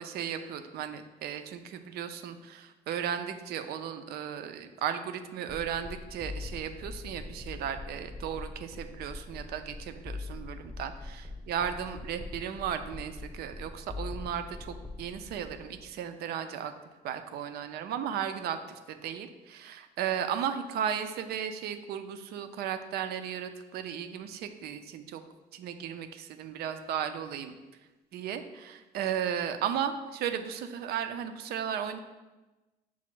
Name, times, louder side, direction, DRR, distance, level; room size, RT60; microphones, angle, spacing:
voice 1, 0.0-16.7 17.0-25.2 25.5-27.5 28.1-32.0, right 8 dB, 70° right, 9 dB, 0.4 m, -35 dB
sound 1, 5.5-15.9, left 3 dB, 5° left, 0.8 m, -42 dB
5.8 x 2.0 x 4.5 m, 1.1 s
cardioid pair, 110°, 17 cm